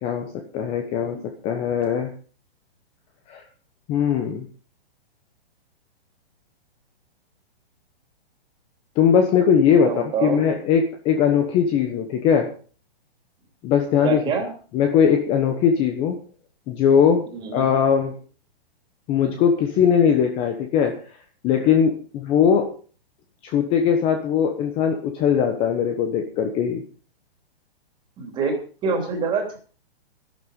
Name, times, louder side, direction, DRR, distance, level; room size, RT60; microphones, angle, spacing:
voice 1, 0.0-2.1 3.3-3.4 3.9-4.5 9.0-12.5 13.6-14.2 14.7-16.2 16.7-18.1 19.1-21.0 21.4-22.7 23.4-26.8, left 7 dB, 20° left, 5 dB, 1.1 m, -20 dB
voice 2, 9.8-10.5 14.0-14.5 17.3-17.7 28.2-28.5 28.8-29.6, right 5 dB, 15° right, 4 dB, 3.1 m, -25 dB
13.0 x 12.0 x 5.4 m, 0.39 s
hypercardioid pair, 165°, 31 cm